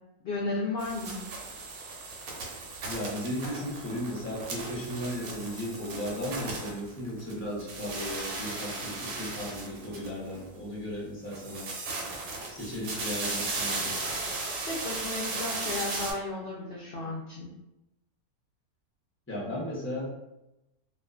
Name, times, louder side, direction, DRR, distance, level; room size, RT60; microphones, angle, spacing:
voice 1, 0.2-1.2 14.7-17.5, left 2 dB, 70° left, -6 dB, 0.5 m, -34 dB
sound 1, 0.8-7.3 7.6-10.4 11.3-16.1, right 3 dB, 75° right, 1.0 m, -36 dB
voice 2, 2.8-11.7 12.5-14.0 19.3-20.1, equal, 20° left, -5 dB, 0.3 m, -35 dB
2.5 x 2.2 x 2.3 m, 0.94 s
omnidirectional pair, 1.5 m